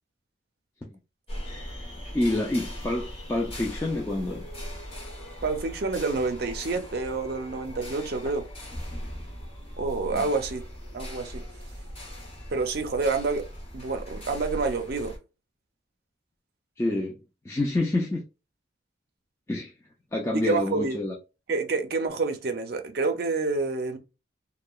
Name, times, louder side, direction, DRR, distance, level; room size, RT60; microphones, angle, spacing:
sound 1, 1.3-15.2, equal, 30° left, 0.8 m, -39 dB
voice 1, 2.1-4.4 10.1-10.3 16.8-17.2 17.4-18.2 19.5-19.7 20.1-21.1, left 2 dB, 15° left, 0.3 m, -27 dB
voice 2, 5.4-8.5 9.8-10.6 10.9-11.4 12.5-13.4 13.7-15.1 20.3-21.0 21.5-24.0, right 3 dB, 55° right, 0.5 m, -28 dB
2.8 x 2.1 x 2.2 m
head